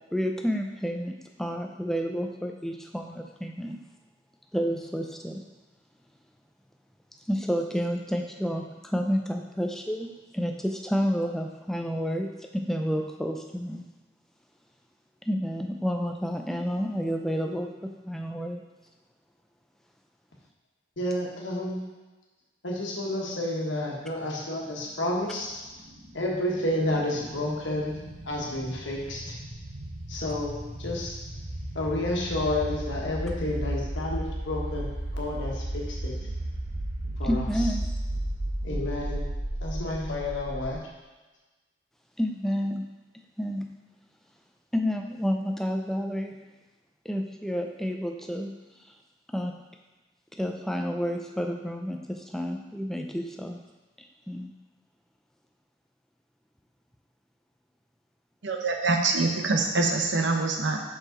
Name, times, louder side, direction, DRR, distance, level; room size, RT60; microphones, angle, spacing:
voice 1, 0.0-3.8 4.5-5.4 7.3-8.6 8.9-10.1 10.3-12.3 12.5-13.8 15.3-17.7 18.1-18.6 37.2-37.9 42.2-42.8 43.4-43.6 44.7-46.4 47.1-48.5 49.3-49.5 50.4-53.6 54.3-54.5, equal, ahead, 2 dB, 0.4 m, -30 dB
voice 2, 21.0-21.8 22.6-25.6 26.1-28.0 28.2-29.3 30.1-31.1 31.7-36.1 37.2-37.4 38.6-39.3 39.6-40.9, left 1 dB, 80° left, -2 dB, 1.3 m, -30 dB
sound 1, 24.9-40.8, right 1 dB, 40° right, 0.8 m, -34 dB
voice 3, 58.4-60.8, right 3 dB, 80° right, 2 dB, 0.8 m, -25 dB
5.7 x 5.4 x 3.8 m, 1.2 s
head